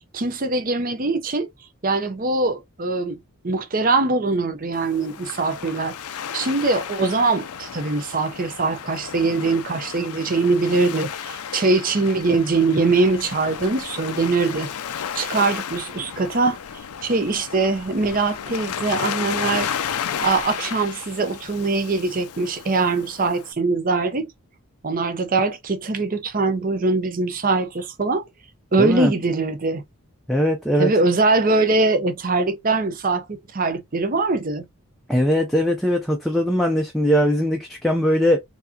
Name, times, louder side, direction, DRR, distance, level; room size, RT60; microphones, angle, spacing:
voice 1, 0.1-1.5 1.8-3.2 3.4-5.9 6.3-14.7 15.1-16.6 17.0-19.7 20.2-24.3 24.8-28.2 28.7-29.8 30.8-34.6, right 3 dB, 40° right, 0.6 m, -22 dB
Waves surf, 4.7-23.5, left 8 dB, 80° left, 0.5 m, -33 dB
voice 2, 28.8-29.1 30.3-30.9 35.1-38.4, equal, ahead, 0.5 m, -20 dB
4.5 x 2.8 x 2.7 m
head